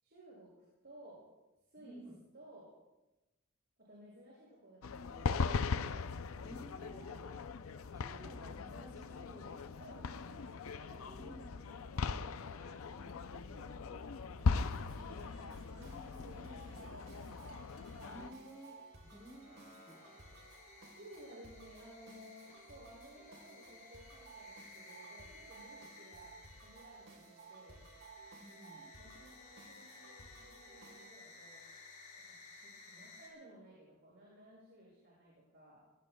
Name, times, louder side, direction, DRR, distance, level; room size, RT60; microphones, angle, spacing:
voice 1, 0.0-1.2 1.7-2.0 2.3-2.7 3.9-6.0 9.8-11.7 11.9-12.8 13.5-15.3 16.2-17.2 20.9-27.8 29.0-31.6 32.1-35.8, right 1 dB, 50° right, -5 dB, 6.6 m, -57 dB
voice 2, 1.8-2.2 6.4-9.7 11.2-11.4 13.0-13.7 15.7-16.8 18.0-18.8 19.0-20.4 28.4-28.9, right 1 dB, 20° right, -3 dB, 3.7 m, -55 dB
sound 1, 4.8-18.3, left 4 dB, 80° left, 0.5 m, -39 dB
sound 2, 14.4-31.1, right 3 dB, 70° right, 3.7 m, -57 dB
sound 3, 17.3-33.3, left 4 dB, 35° left, 5.0 m, -58 dB
26.5 x 19.0 x 2.3 m, 1.0 s
head